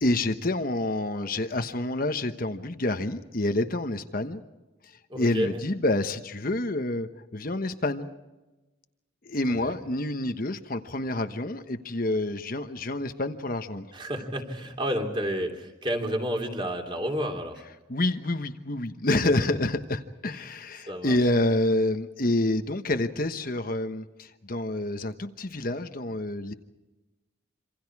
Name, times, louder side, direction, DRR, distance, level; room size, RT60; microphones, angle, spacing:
voice 1, 0.0-4.4 5.2-8.1 9.2-13.9 17.9-26.5, left 2 dB, 45° left, 8 dB, 1.2 m, -28 dB
voice 2, 5.1-5.6 9.5-9.8 13.9-17.6 20.8-21.2, equal, 25° right, 3 dB, 3.2 m, -30 dB
27.0 x 26.5 x 4.8 m, 1.1 s
head